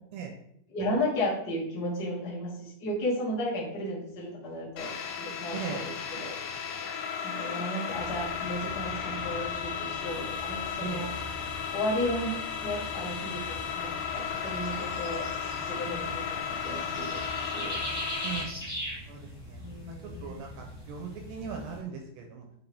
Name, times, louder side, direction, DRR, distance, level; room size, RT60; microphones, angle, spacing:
voice 1, 0.7-6.3 7.2-11.1 11.7-12.4 12.6-15.3 15.6-16.2 16.5-17.8 19.6-20.4, left 1 dB, 40° left, -7 dB, 1.3 m, -34 dB
sound 1, 4.8-18.4, left 7 dB, 80° left, 3.1 m, -35 dB
voice 2, 5.5-5.8 10.8-11.1 18.2-18.5 19.1-19.6 20.2-22.5, right 6 dB, 80° right, 3 dB, 2.4 m, -38 dB
sound 2, 7.9-21.8, equal, 10° right, 1.0 m, -42 dB
8.3 x 3.9 x 3.5 m, 0.71 s
omnidirectional pair, 5.5 m